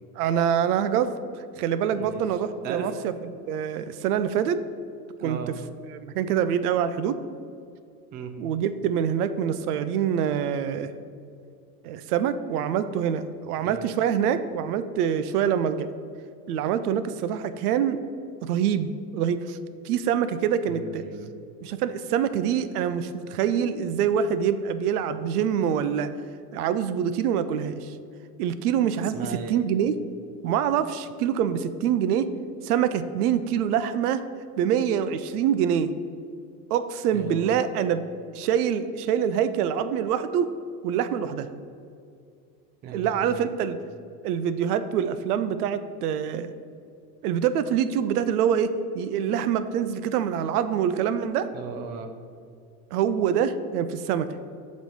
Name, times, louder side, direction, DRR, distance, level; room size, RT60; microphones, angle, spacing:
voice 1, 0.2-4.6 5.2-5.4 5.9-7.2 8.4-10.9 11.8-15.9 16.5-18.0 18.4-19.6 19.8-21.0 21.6-26.1 26.5-27.9 28.4-29.2 29.5-30.0 30.4-32.3 32.6-34.2 34.6-35.9 36.7-38.0 38.3-40.5 40.8-41.5 42.9-43.8 44.2-46.5 47.2-51.5 52.9-54.3, right 8 dB, 75° right, 11 dB, 0.5 m, -25 dB
voice 2, 1.9-2.3 2.6-3.0 5.2-5.6 8.1-8.4 13.6-13.9 20.7-21.4 29.1-29.6 37.1-37.6 42.8-43.5 51.5-52.1, right 5 dB, 25° right, 6 dB, 0.3 m, -37 dB
6.2 x 3.1 x 5.3 m, 2.4 s
hypercardioid pair, 100°, 46 cm